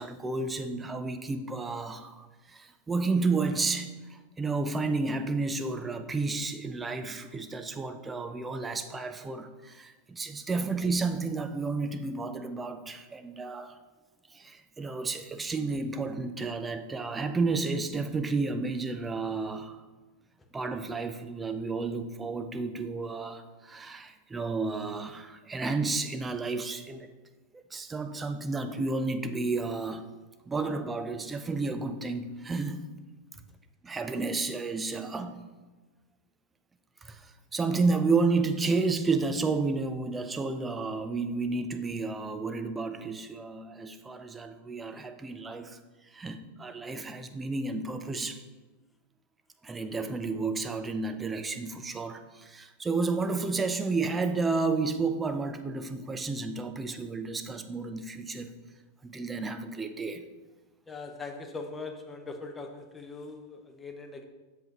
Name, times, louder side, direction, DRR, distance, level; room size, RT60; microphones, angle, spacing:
voice 1, 0.0-13.8 14.3-19.8 20.5-27.1 27.5-30.1 30.5-32.8 33.8-35.4 37.0-45.8 46.1-48.4 49.6-58.5 59.0-60.3, right 3 dB, 15° right, 8 dB, 0.5 m, -31 dB
voice 2, 60.9-64.3, left 3 dB, 15° left, 5 dB, 0.8 m, -41 dB
7.6 x 6.7 x 3.0 m, 1.2 s
figure-of-eight pair, 90°, 0 cm